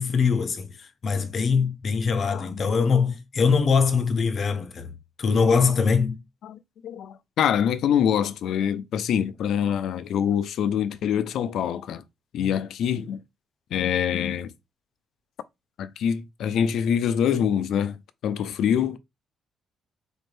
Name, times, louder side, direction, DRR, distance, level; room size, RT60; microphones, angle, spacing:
voice 1, 0.0-4.9 5.2-6.2 12.4-12.5, left 5 dB, 50° left, 0.7 m, -22 dB
voice 2, 2.3-2.6 6.4-12.0 12.3-13.2 13.7-14.5 15.8-18.0 18.2-19.0, left 8 dB, 75° left, 0.4 m, -25 dB
4.2 x 2.6 x 3.3 m
cardioid pair, 90°, 0 cm